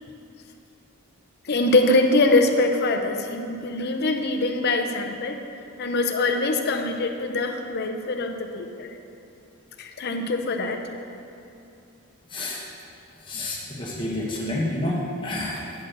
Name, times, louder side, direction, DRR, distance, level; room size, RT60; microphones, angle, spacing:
voice 1, 1.4-5.4 5.8-8.9 9.8-10.8, left 2 dB, 50° left, 4 dB, 0.6 m, -23 dB
voice 2, 12.2-12.9 13.2-15.7, left 1 dB, 20° left, -3 dB, 1.2 m, -29 dB
9.1 x 4.3 x 6.6 m, 2.8 s
head